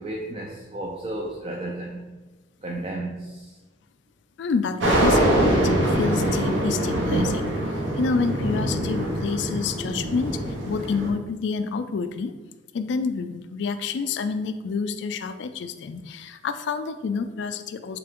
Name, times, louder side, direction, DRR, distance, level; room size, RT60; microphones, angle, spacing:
voice 1, 0.0-2.0 2.6-3.5, right 1 dB, 30° right, 0 dB, 0.4 m, -33 dB
voice 2, 4.4-12.4 12.7-18.0, left 5 dB, 65° left, 10 dB, 0.3 m, -28 dB
sound 1, 4.8-11.1, right 1 dB, 70° right, 0.8 m, -23 dB
3.7 x 3.3 x 3.5 m, 1.2 s
head